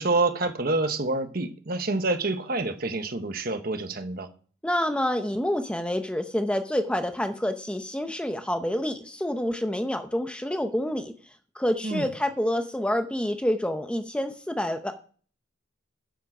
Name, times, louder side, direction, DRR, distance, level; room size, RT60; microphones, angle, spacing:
voice 1, 0.0-4.3 11.8-12.1, right 2 dB, 50° right, 1.2 m, -27 dB
voice 2, 4.6-11.1 11.6-15.1, left 1 dB, 5° left, 0.7 m, -28 dB
10.0 x 7.6 x 6.0 m
head